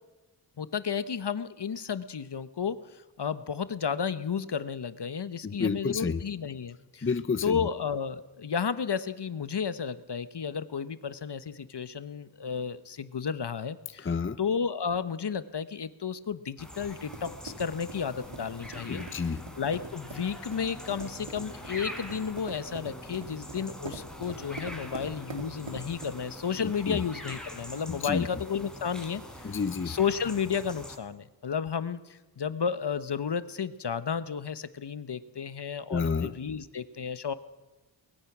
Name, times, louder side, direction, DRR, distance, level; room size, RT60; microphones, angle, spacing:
voice 1, 0.6-7.1 7.4-14.1 14.4-19.0 19.6-29.6 29.9-37.3, left 6 dB, 65° left, 13 dB, 1.2 m, -32 dB
voice 2, 5.4-6.2 7.0-7.7 14.0-14.4 18.7-19.4 26.6-27.0 27.9-28.3 29.4-30.0 35.9-36.4, left 5 dB, 30° left, 13 dB, 0.7 m, -30 dB
sound 1, 16.6-31.0, left 1 dB, ahead, 4.5 m, -44 dB
sound 2, 16.7-26.4, right 3 dB, 75° right, 2.9 m, -44 dB
23.0 x 21.0 x 6.1 m, 1.1 s
wide cardioid pair, 70°, 45 cm